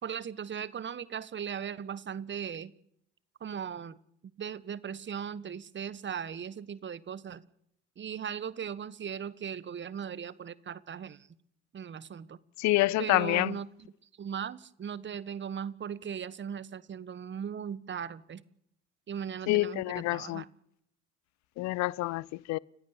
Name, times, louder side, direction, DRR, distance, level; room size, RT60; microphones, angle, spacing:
voice 1, 0.0-2.7 3.4-4.0 4.4-7.4 8.0-11.3 11.7-12.4 13.0-13.7 14.2-18.4 19.1-20.5, right 8 dB, 30° right, 1.4 m, -38 dB
voice 2, 12.6-13.6 19.5-20.4 21.6-22.6, left 19 dB, 50° left, 0.8 m, -27 dB
30.0 x 16.5 x 7.2 m
figure-of-eight pair, 55°, 35 cm